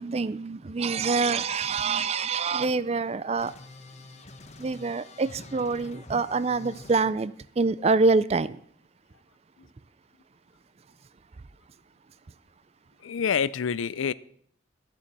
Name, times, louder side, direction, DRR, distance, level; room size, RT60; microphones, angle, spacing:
voice 1, 0.0-3.5 4.6-8.6, right 4 dB, 30° right, 17 dB, 0.4 m, -26 dB
sound 1, 3.4-7.0, left 2 dB, 35° left, 0.9 m, -46 dB
voice 2, 13.0-14.1, left 7 dB, 85° left, 19 dB, 0.5 m, -27 dB
13.5 x 7.1 x 6.0 m, 0.63 s
head